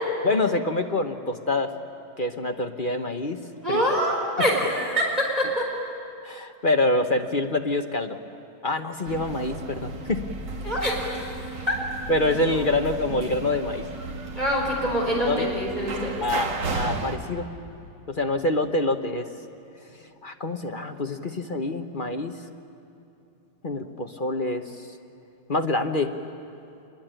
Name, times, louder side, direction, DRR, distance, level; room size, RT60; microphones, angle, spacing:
voice 1, 0.2-1.7 2.2-3.4 3.7-3.8 4.4-4.5 6.2-8.2 8.6-10.3 12.1-13.8 15.3-15.5 16.2-17.5 18.1-19.3 20.2-22.3 23.6-24.9 25.5-26.1, left 2 dB, 35° left, 5 dB, 1.0 m, -26 dB
voice 2, 3.6-5.7 10.6-11.3 11.7-11.8 14.4-16.2, equal, 25° right, -2 dB, 4.7 m, -25 dB
sound 1, 9.1-17.2, right 3 dB, 80° right, 2.4 m, -34 dB
27.0 x 22.0 x 9.0 m, 2.8 s
omnidirectional pair, 1.9 m